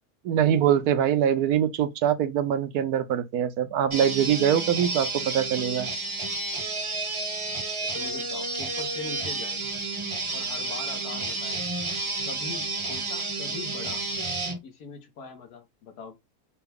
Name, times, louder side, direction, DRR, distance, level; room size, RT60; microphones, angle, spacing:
voice 1, 0.2-5.9, right 9 dB, 90° right, 1.2 m, -23 dB
sound 1, 3.9-14.6, right 3 dB, 25° right, 0.7 m, -31 dB
voice 2, 7.9-9.6 10.3-11.6 12.3-14.0 14.6-16.2, left 4 dB, 85° left, 1.6 m, -41 dB
5.7 x 2.3 x 3.4 m
omnidirectional pair, 1.6 m